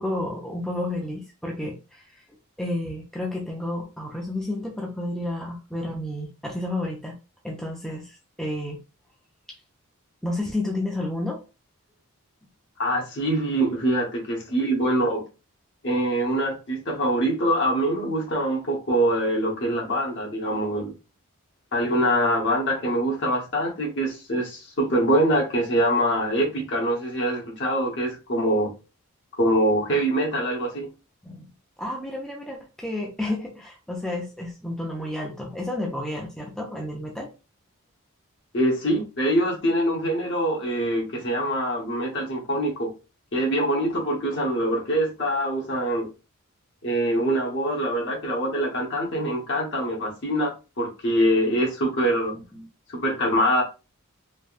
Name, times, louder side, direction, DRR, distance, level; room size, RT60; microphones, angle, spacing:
voice 1, 0.0-2.2 2.6-7.2 7.4-8.8 10.2-11.4 31.2-31.5 31.8-37.3 52.3-52.7, left 1 dB, ahead, 0.4 m, -31 dB
voice 2, 12.8-15.2 15.8-20.9 21.7-28.7 29.3-30.9 38.5-42.9 43.3-46.1 46.8-52.3 52.9-53.6, right 1 dB, 50° left, 1.0 m, -24 dB
3.3 x 2.1 x 2.4 m
head